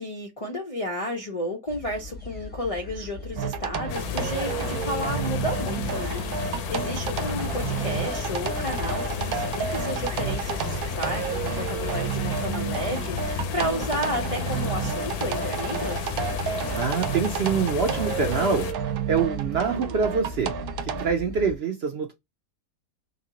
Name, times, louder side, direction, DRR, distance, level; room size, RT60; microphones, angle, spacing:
voice 1, 0.0-16.2, left 1 dB, 60° left, 0.3 m, -32 dB
sound 1, 1.7-21.6, left 2 dB, 10° left, 0.6 m, -39 dB
sound 2, 3.4-21.1, right 8 dB, 80° right, 1.1 m, -31 dB
sound 3, 3.9-18.7, left 6 dB, 85° left, 1.1 m, -32 dB
voice 2, 16.8-18.7 19.1-20.5 21.0-22.1, right 6 dB, 65° right, 0.6 m, -25 dB
3.2 x 2.6 x 2.7 m
omnidirectional pair, 1.6 m